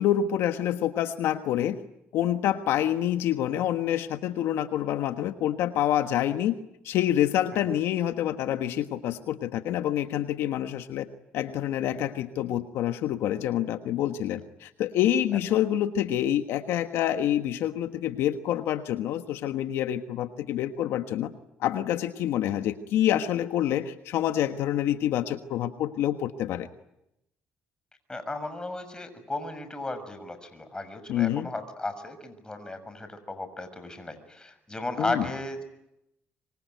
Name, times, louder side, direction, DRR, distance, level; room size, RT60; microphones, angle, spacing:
voice 1, 0.0-1.8 2.1-6.6 6.8-11.1 11.3-21.3 21.6-26.7 31.1-31.5 35.0-35.2, left 11 dB, 80° left, 8 dB, 1.4 m, -27 dB
voice 2, 28.1-35.6, left 2 dB, 20° left, 10 dB, 6.6 m, -35 dB
25.5 x 24.5 x 9.4 m, 0.85 s
supercardioid pair, 80°, 4 cm